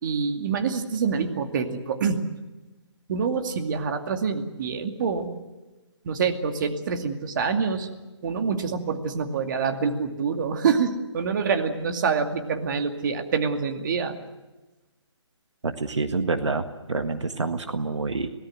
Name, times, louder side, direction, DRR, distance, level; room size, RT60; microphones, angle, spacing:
voice 1, 0.0-2.2 3.1-5.3 6.0-7.9 8.2-14.2, right 5 dB, 40° right, 6 dB, 2.4 m, -26 dB
voice 2, 15.6-18.3, right 3 dB, 75° right, 8 dB, 1.7 m, -27 dB
27.0 x 18.5 x 7.8 m, 1.1 s
figure-of-eight pair, 150°, 15 cm